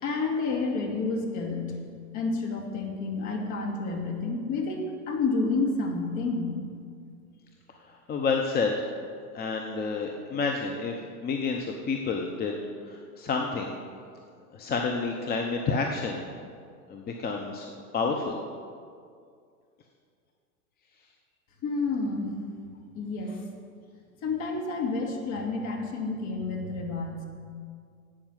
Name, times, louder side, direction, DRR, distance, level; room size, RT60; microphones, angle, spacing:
voice 1, 0.0-1.8 2.1-6.6 21.6-22.3 22.9-23.3 24.2-27.3, left 3 dB, 40° left, 1 dB, 2.6 m, -29 dB
voice 2, 8.1-8.7 9.3-10.9 11.2-12.6 12.8-13.8 14.5-16.2 16.9-17.7 17.9-18.4, left 4 dB, 20° left, 2 dB, 0.9 m, -29 dB
11.5 x 8.8 x 7.4 m, 2.2 s
hypercardioid pair, 110°, 45 cm